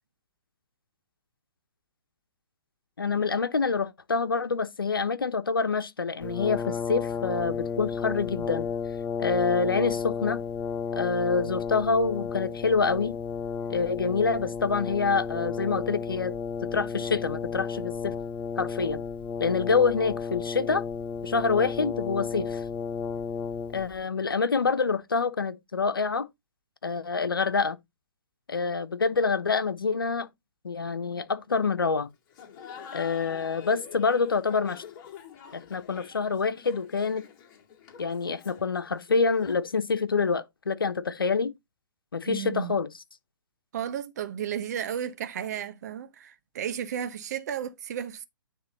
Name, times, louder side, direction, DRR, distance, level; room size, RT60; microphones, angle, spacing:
voice 1, 3.0-8.7 9.2-10.4 10.9-13.2 13.7-16.3 16.6-18.1 18.6-19.0 19.4-20.8 21.2-22.6 23.7-26.3 26.8-27.8 28.5-30.3 30.6-32.1 32.9-34.8 35.5-37.2 38.0-41.5 42.1-42.9, left 4 dB, 75° left, 1.1 m, -26 dB
Brass instrument, 6.2-24.0, left 6 dB, 10° left, 0.4 m, -33 dB
Laughter, 32.3-39.8, left 8 dB, 30° left, 2.2 m, -47 dB
voice 2, 42.3-42.8 43.7-48.2, right 9 dB, 50° right, 1.0 m, -33 dB
9.8 x 3.6 x 4.1 m
figure-of-eight pair, 125°, 12 cm